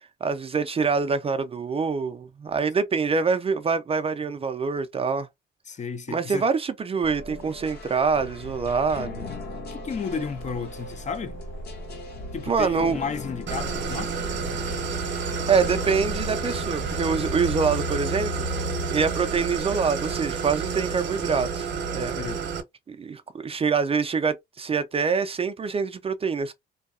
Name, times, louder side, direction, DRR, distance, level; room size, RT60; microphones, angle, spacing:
voice 1, 0.2-5.3 6.1-9.2 12.5-13.0 15.5-18.5 18.9-22.2 22.9-26.5, right 5 dB, 30° right, 0.4 m, -25 dB
voice 2, 5.7-6.5 9.7-11.4 12.3-14.2 22.2-22.4, left 5 dB, 35° left, 0.5 m, -32 dB
sound 1, 7.0-17.6, left 1 dB, 55° left, 1.0 m, -38 dB
sound 2, 9.9-21.4, left 2 dB, 80° left, 1.4 m, -37 dB
Idling, 13.5-22.6, right 6 dB, 65° right, 0.7 m, -30 dB
2.7 x 2.2 x 2.3 m
cardioid pair, 90°, 20 cm